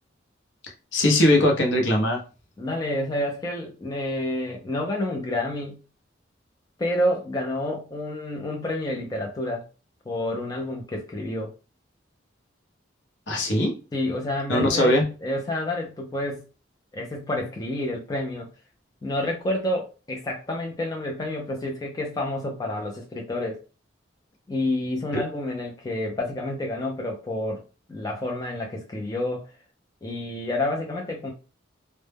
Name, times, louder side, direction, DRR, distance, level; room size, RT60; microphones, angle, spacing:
voice 1, 0.9-2.2 13.3-13.7 14.5-15.0 25.1-25.2, left 1 dB, 70° left, 2 dB, 0.7 m, -20 dB
voice 2, 2.6-5.8 6.8-9.6 10.1-11.5 13.9-16.4 16.9-18.5 19.0-23.6 24.5-27.6 27.9-29.5 30.0-31.3, left 1 dB, 20° left, 0 dB, 0.3 m, -29 dB
2.0 x 2.0 x 3.2 m, 0.33 s
head